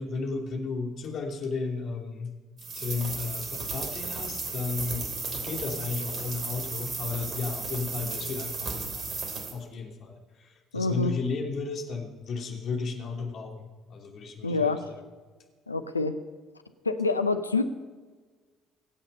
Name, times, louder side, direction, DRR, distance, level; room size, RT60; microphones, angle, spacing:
voice 1, 0.0-2.3 2.7-9.1 9.5-15.0, left 4 dB, 50° left, 1 dB, 3.0 m, -34 dB
sound 1, 2.6-9.5, right 4 dB, 45° right, 3.2 m, -34 dB
voice 2, 10.7-11.1 14.4-14.8 15.7-16.2 16.8-17.6, left 3 dB, 90° left, 9 dB, 0.7 m, -26 dB
23.5 x 9.0 x 5.6 m, 1.4 s
figure-of-eight pair, 50°, 0 cm